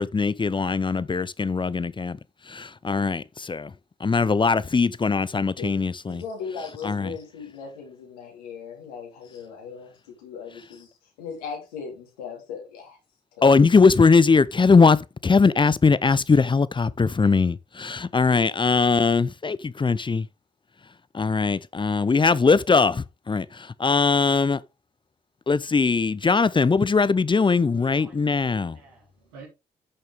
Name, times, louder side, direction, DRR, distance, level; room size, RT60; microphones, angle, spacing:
voice 1, 0.0-2.2 2.5-3.7 4.0-6.2 6.8-7.1 13.4-20.3 21.1-24.6 25.5-28.8, left 4 dB, 25° left, 0.7 m, -20 dB
voice 2, 6.1-10.9 11.2-13.0 13.4-13.5, left 5 dB, 85° left, 3.2 m, -38 dB
voice 3, 27.8-29.5, right 4 dB, 85° right, 3.9 m, -49 dB
11.0 x 6.6 x 3.6 m
hypercardioid pair, 45°, 19 cm